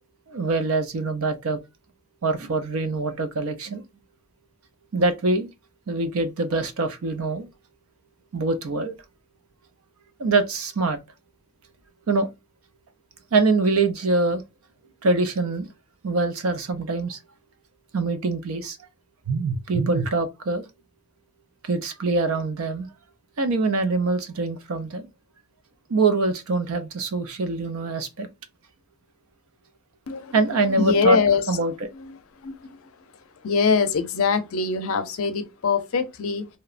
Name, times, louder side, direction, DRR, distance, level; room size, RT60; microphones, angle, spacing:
voice 1, 0.3-1.6 2.2-3.8 4.9-5.5 5.9-7.5 8.3-8.9 10.2-11.0 12.1-12.3 13.3-14.4 15.0-15.7 16.0-17.2 17.9-18.8 19.3-20.6 21.6-22.9 23.4-25.1 25.9-28.3 30.3-31.2 31.5-31.7, right 3 dB, 70° right, 0.5 m, -24 dB
voice 2, 30.1-31.5 31.9-32.9 33.4-36.5, left 5 dB, 70° left, 0.5 m, -24 dB
2.8 x 2.1 x 2.4 m
head